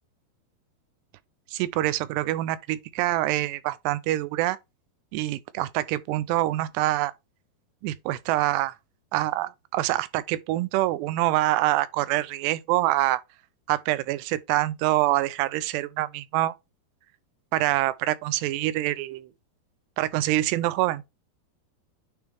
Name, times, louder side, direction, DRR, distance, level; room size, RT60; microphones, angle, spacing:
voice 1, 1.5-4.6 5.1-7.1 7.8-8.7 9.1-13.2 13.7-16.5 17.5-19.3 20.0-21.0, right 16 dB, 90° right, 2.7 m, -25 dB
9.3 x 3.3 x 3.4 m
omnidirectional pair, 4.8 m